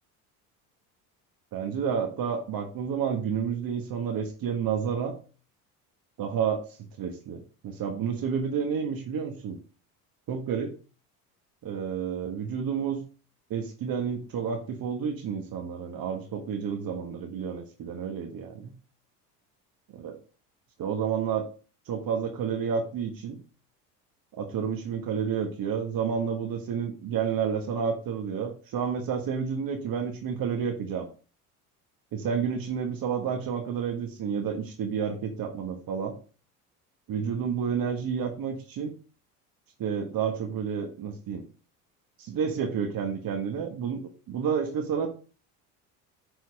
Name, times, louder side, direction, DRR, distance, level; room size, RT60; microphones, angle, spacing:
voice 1, 1.5-5.1 6.2-9.6 10.3-10.8 11.6-13.0 13.5-18.7 20.0-20.2 20.8-21.4 21.9-23.4 24.4-31.1 32.1-36.2 37.1-38.9 39.8-41.4 42.2-44.0 44.3-45.1, right 7 dB, 50° right, 4 dB, 1.6 m, -30 dB
9.6 x 4.5 x 5.3 m, 0.38 s
hypercardioid pair, 65°, 45 cm